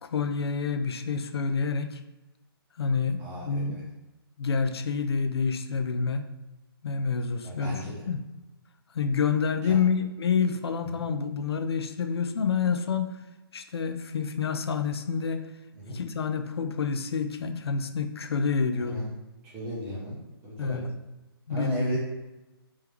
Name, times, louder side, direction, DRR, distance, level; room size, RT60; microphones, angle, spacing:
voice 1, 0.0-2.0 2.8-3.8 4.4-6.2 6.8-8.2 8.9-13.2 13.5-15.5 15.9-19.1 20.6-20.9 21.5-22.0, left 5 dB, 75° left, 8 dB, 0.5 m, -28 dB
voice 2, 3.2-3.8 7.4-8.1 9.6-9.8 15.8-16.0 18.7-19.0 19.4-20.2 20.4-20.8 21.5-22.0, equal, 10° right, -5 dB, 0.7 m, -35 dB
3.4 x 3.2 x 3.4 m, 1.0 s
hypercardioid pair, 170°, 13 cm